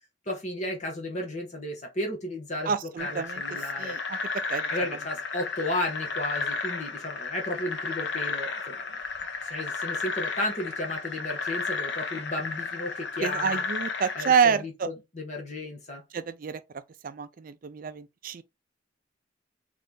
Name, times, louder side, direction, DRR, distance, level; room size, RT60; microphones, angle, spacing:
voice 1, 0.3-4.0 4.7-8.9 9.4-13.6 14.1-16.0, left 1 dB, 40° left, 1.2 m, -34 dB
voice 2, 2.7-3.4 3.8-4.2 4.5-4.6 13.2-14.9 16.1-16.6 17.0-18.4, right 6 dB, 45° right, 0.4 m, -27 dB
sound 1, 3.0-14.4, left 4 dB, 65° left, 0.9 m, -33 dB
3.8 x 3.3 x 3.7 m
head